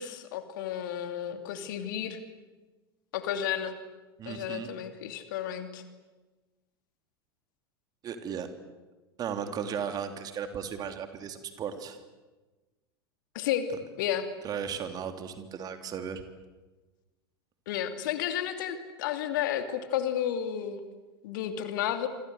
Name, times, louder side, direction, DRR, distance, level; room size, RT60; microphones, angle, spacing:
voice 1, 0.0-2.2 3.1-3.8 4.3-5.8 13.3-13.7 14.0-14.3 17.7-20.8 21.2-22.1, left 10 dB, 55° left, 8 dB, 2.8 m, -32 dB
voice 2, 4.2-4.7 8.0-8.5 9.2-12.0 14.4-16.2, right 7 dB, 30° right, 7 dB, 3.1 m, -35 dB
28.0 x 25.5 x 7.9 m, 1.2 s
figure-of-eight pair, 85°, 13 cm